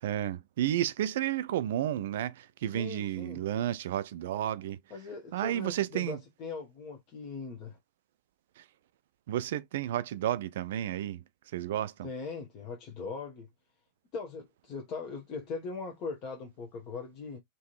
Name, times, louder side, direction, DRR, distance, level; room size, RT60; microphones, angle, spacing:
voice 1, 0.0-4.8 5.3-6.2 8.6-8.7 9.3-11.2 11.5-12.1, right 12 dB, 55° right, 0.4 m, -32 dB
voice 2, 2.7-3.4 4.9-7.8 12.0-13.5 14.1-17.4, left 4 dB, 40° left, 1.0 m, -40 dB
3.8 x 2.7 x 3.0 m
figure-of-eight pair, 90°, 0 cm